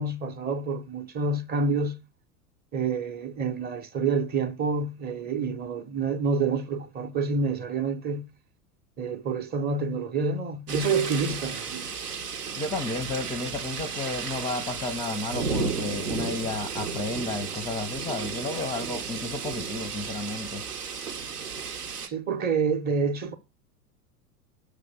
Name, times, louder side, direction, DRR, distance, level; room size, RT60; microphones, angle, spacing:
voice 1, 0.0-2.0 2.7-8.3 9.0-11.9 21.7-21.8 22.1-23.3, right 4 dB, 20° right, 0.7 m, -28 dB
sound 1, 10.7-22.1, right 5 dB, 85° right, 1.0 m, -33 dB
voice 2, 12.6-20.6, left 3 dB, 10° left, 0.5 m, -32 dB
6.2 x 3.3 x 5.7 m
figure-of-eight pair, 85°, 46 cm